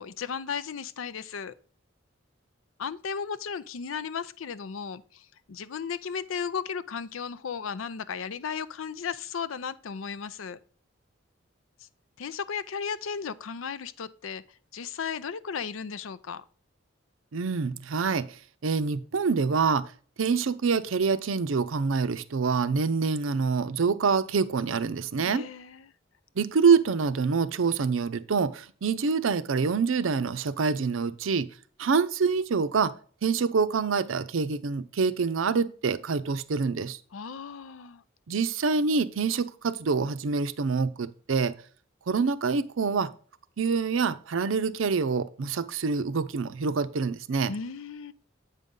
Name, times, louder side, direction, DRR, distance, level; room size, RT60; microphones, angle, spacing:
voice 1, 0.0-1.5 2.8-10.6 12.2-14.4 14.7-16.4 25.2-25.9 37.1-38.0 47.5-48.1, left 6 dB, 90° left, 0.5 m, -35 dB
voice 2, 17.3-18.4 18.6-19.9 20.2-25.4 26.4-31.5 31.8-32.9 33.2-37.0 38.3-41.6 42.1-43.1 43.6-47.5, right 5 dB, 85° right, 0.5 m, -26 dB
8.1 x 5.3 x 3.7 m
head